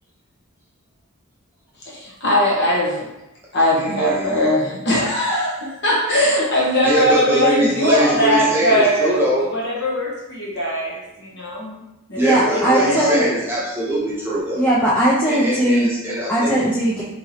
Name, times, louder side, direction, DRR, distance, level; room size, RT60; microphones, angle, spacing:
voice 1, 1.8-3.1 3.5-9.2 9.5-11.8 12.1-13.3, equal, 50° left, -4 dB, 1.0 m, -20 dB
voice 2, 3.9-4.5 6.8-9.5 12.2-14.7 15.3-16.6, right 1 dB, 10° right, -8 dB, 0.9 m, -22 dB
voice 3, 12.2-13.2 14.6-15.9 16.3-17.0, right 1 dB, 5° left, -9 dB, 0.4 m, -18 dB
2.9 x 2.7 x 4.0 m, 0.92 s
head